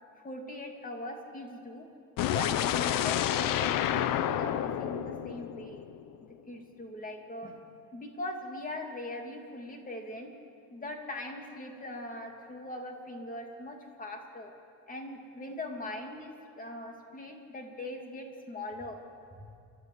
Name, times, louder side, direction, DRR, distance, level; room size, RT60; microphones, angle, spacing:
voice 1, 0.2-1.8 2.3-5.8 6.2-7.6 7.9-10.3 10.7-14.5 14.9-19.0, left 1 dB, 25° left, 3 dB, 3.0 m, -41 dB
sound 1, 2.2-6.2, left 11 dB, 70° left, 0.9 m, -29 dB
29.5 x 13.0 x 8.2 m, 2.4 s
cardioid pair, 130°, 35 cm